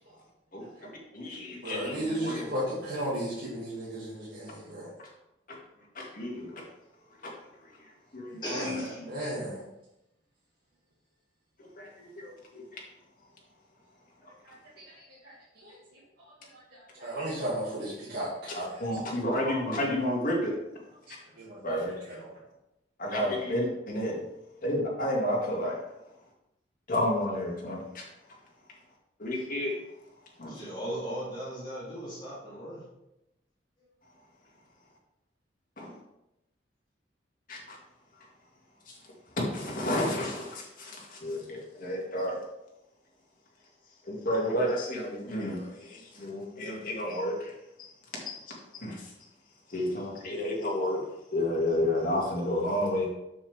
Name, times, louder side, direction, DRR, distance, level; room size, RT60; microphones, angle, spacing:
voice 1, 0.5-2.4 5.5-5.6 5.9-6.6 7.2-7.3 7.6-8.8 11.8-12.8 18.5-20.6 21.1-21.2 21.6-21.9 23.0-24.2 24.6-25.8 26.9-28.1 29.2-29.8 30.4-30.6 35.8-36.0 37.5-37.8 38.9-39.0 39.4-42.4 44.1-47.9 48.3-49.1 49.7-53.1, left 1 dB, 50° left, -2 dB, 2.2 m, -31 dB
voice 2, 1.6-4.9 8.5-8.7 9.1-9.6 14.4-14.5 14.9-15.8 16.2-18.8 21.3-22.3, right 1 dB, 60° right, -9 dB, 2.3 m, -35 dB
voice 3, 8.4-9.0 30.5-32.8, equal, 25° left, -7 dB, 3.2 m, -37 dB
7.3 x 7.0 x 3.5 m, 0.88 s
head